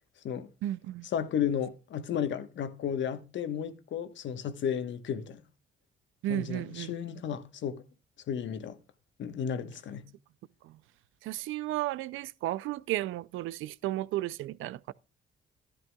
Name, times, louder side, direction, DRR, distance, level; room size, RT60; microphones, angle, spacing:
voice 1, 0.6-1.1 6.2-6.9 10.6-10.8 11.2-14.9, right 15 dB, 85° right, 0.5 m, -33 dB
voice 2, 1.1-5.4 6.3-7.8 8.3-8.8 9.2-10.1, left 8 dB, 70° left, 1.3 m, -33 dB
13.5 x 11.5 x 2.3 m
cardioid pair, 90°, 20 cm